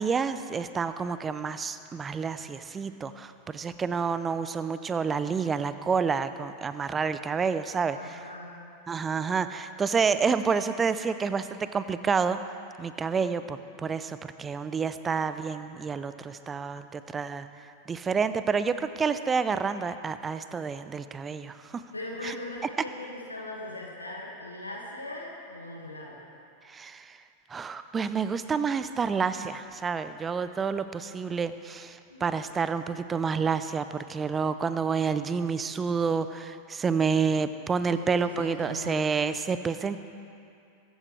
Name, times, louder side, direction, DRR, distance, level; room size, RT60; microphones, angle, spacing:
voice 1, 0.0-8.2 8.9-12.4 12.8-17.5 17.9-21.8 22.2-22.4 26.7-27.2 27.5-40.0, right 5 dB, 20° right, 12 dB, 0.7 m, -29 dB
voice 2, 7.9-8.6 21.9-26.2 32.1-32.3 37.9-39.1, left 2 dB, 85° left, -2 dB, 2.0 m, -40 dB
23.0 x 14.5 x 3.4 m, 2.6 s
figure-of-eight pair, 90°, 0 cm